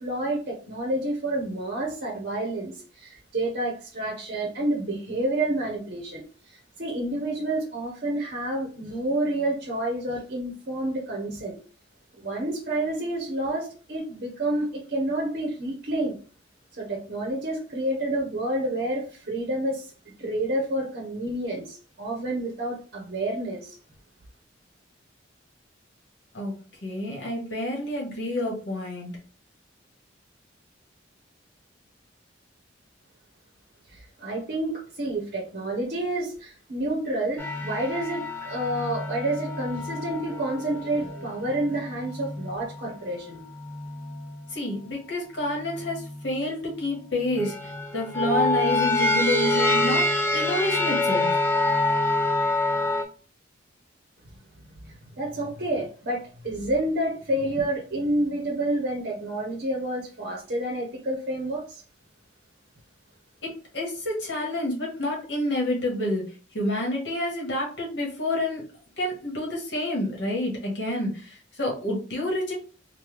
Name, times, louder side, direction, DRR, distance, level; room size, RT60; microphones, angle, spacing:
voice 1, 0.0-6.2 6.8-11.6 12.2-16.2 16.8-19.9 20.2-23.8 33.9-43.4 54.9-61.8, right 1 dB, 50° right, -1 dB, 0.7 m, -29 dB
voice 2, 26.8-29.1 44.5-50.1 50.3-51.3 63.7-66.2 66.5-68.6 69.0-72.5, left 1 dB, 60° left, -1 dB, 1.2 m, -28 dB
sound 1, 37.4-42.9 43.5-44.4 45.6-46.3 47.3-53.0, left 2 dB, 10° left, 0.4 m, -27 dB
3.1 x 2.2 x 3.2 m, 0.38 s
head